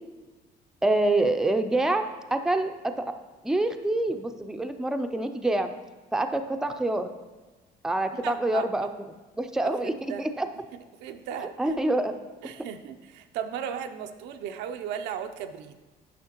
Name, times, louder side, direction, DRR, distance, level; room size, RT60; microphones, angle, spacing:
voice 1, 0.8-3.0 3.4-5.7 6.1-7.1 7.8-8.9 9.4-10.5 11.4-12.1, right 2 dB, 5° right, 7 dB, 0.4 m, -26 dB
voice 2, 8.1-8.7 9.6-10.2 11.0-11.5 12.4-15.7, right 8 dB, 90° right, 7 dB, 0.5 m, -36 dB
9.9 x 5.7 x 2.9 m, 1.2 s
cardioid pair, 110°, 17 cm